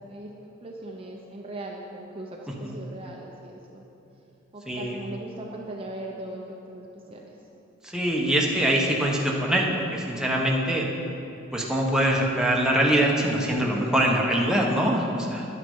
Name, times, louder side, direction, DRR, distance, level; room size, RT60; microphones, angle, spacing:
voice 1, 0.6-3.8 4.5-7.3, right 1 dB, 30° right, -1 dB, 0.8 m, -39 dB
voice 2, 4.7-5.0 7.8-10.9 11.5-15.4, right 1 dB, 5° right, -2 dB, 1.1 m, -23 dB
10.5 x 9.7 x 5.5 m, 2.8 s
head